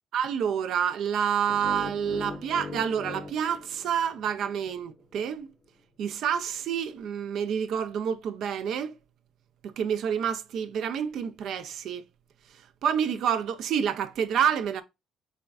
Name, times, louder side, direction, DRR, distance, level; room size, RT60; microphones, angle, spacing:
voice 1, 0.1-5.5 6.0-9.0 9.6-12.0 12.8-14.8, right 8 dB, 70° right, 0.5 m, -28 dB
sound 1, 1.5-4.6, left 3 dB, 35° left, 0.6 m, -40 dB
4.3 x 3.4 x 2.3 m
cardioid pair, 130°, 0 cm